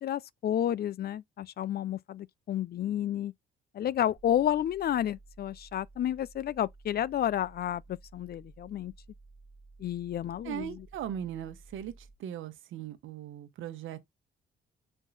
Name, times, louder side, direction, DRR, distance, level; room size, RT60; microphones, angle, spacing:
voice 1, 0.0-3.3 3.7-8.9 9.8-10.7, left 11 dB, 50° left, 0.5 m, -31 dB
sound 1, 4.2-12.2, right 3 dB, 30° right, 1.4 m, -55 dB
voice 2, 10.4-14.0, right 10 dB, 80° right, 1.2 m, -39 dB
5.6 x 4.5 x 4.0 m
cardioid pair, 90°, 20 cm